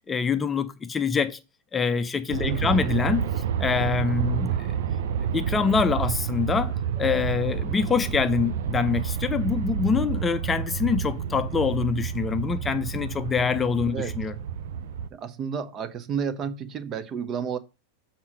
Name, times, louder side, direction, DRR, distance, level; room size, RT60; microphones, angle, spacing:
voice 1, 0.1-1.4 1.7-3.3 3.6-4.6 5.3-14.3, left 5 dB, 15° left, 0.6 m, -25 dB
Aircraft, 2.3-15.1, right 8 dB, 55° right, 0.6 m, -29 dB
voice 2, 2.4-2.9 13.9-14.1 15.1-17.6, right 7 dB, 30° right, 0.8 m, -31 dB
7.3 x 4.4 x 6.0 m
figure-of-eight pair, 90°, 0 cm